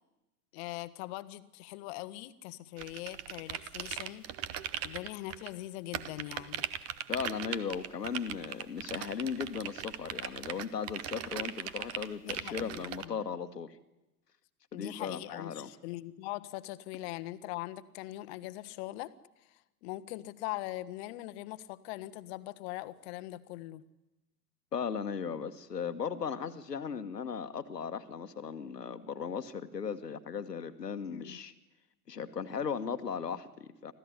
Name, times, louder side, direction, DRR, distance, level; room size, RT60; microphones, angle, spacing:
voice 1, 0.5-4.3 4.8-6.7 12.2-13.2 14.7-19.1 19.5-23.9 31.1-31.4, left 17 dB, 40° left, 13 dB, 1.3 m, -41 dB
sound 1, 2.8-5.5 5.9-13.0, right 10 dB, 30° right, 1.2 m, -39 dB
voice 2, 7.1-13.8 14.7-15.7 24.7-31.5 32.1-33.9, left 6 dB, 75° left, 9 dB, 1.6 m, -37 dB
25.5 x 15.5 x 10.0 m, 0.98 s
figure-of-eight pair, 95°, 49 cm